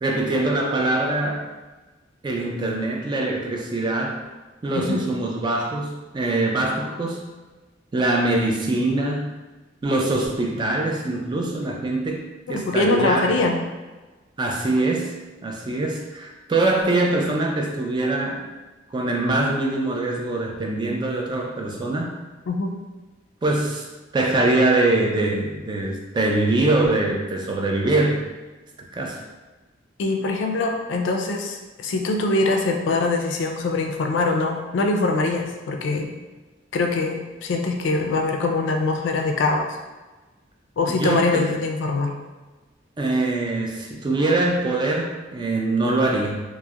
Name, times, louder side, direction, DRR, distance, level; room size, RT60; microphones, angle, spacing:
voice 1, 0.0-1.5 2.2-4.2 4.6-7.2 7.9-9.4 9.8-12.2 12.5-13.3 14.4-15.1 15.4-18.4 18.9-22.2 23.4-23.9 24.1-28.3 28.9-29.2 40.9-41.6 43.0-46.4, right 2 dB, 25° right, 0 dB, 0.3 m, -23 dB
voice 2, 12.5-13.6 22.5-22.8 30.0-36.1 36.7-39.8 40.8-42.1, left 3 dB, 75° left, 3 dB, 0.3 m, -23 dB
2.7 x 2.0 x 2.2 m, 1.2 s
head